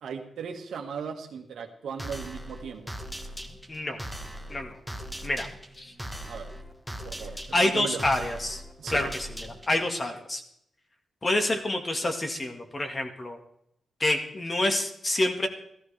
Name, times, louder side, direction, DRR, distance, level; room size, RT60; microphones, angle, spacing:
voice 1, 0.0-2.8 6.3-6.5 7.0-7.3 7.6-8.0 8.8-9.0, right 6 dB, 90° right, 2 dB, 1.7 m, -37 dB
sound 1, 2.0-9.9, equal, ahead, 1.2 m, -40 dB
voice 2, 3.7-4.0 4.5-4.8 5.2-5.5 5.8-5.9 7.5-8.6 8.9-10.4 11.2-13.4 14.0-15.5, left 1 dB, 30° left, 4 dB, 1.8 m, -27 dB
15.0 x 14.0 x 3.4 m, 0.74 s
wide cardioid pair, 115°, 0 cm